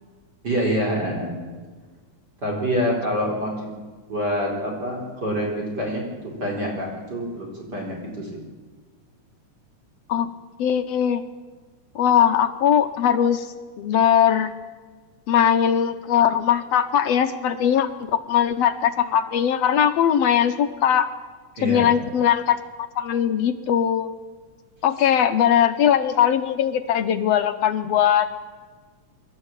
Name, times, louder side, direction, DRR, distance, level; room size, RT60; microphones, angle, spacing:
voice 1, 0.4-1.4 2.4-3.7 4.1-6.0 6.4-8.3 21.5-21.8, equal, 35° right, -2 dB, 4.8 m, -26 dB
voice 2, 10.6-11.2 12.0-14.5 15.3-21.1 21.6-22.6 23.0-24.1 24.8-28.3, left 9 dB, 70° left, 9 dB, 1.8 m, -20 dB
25.0 x 12.5 x 8.9 m, 1.4 s
omnidirectional pair, 3.3 m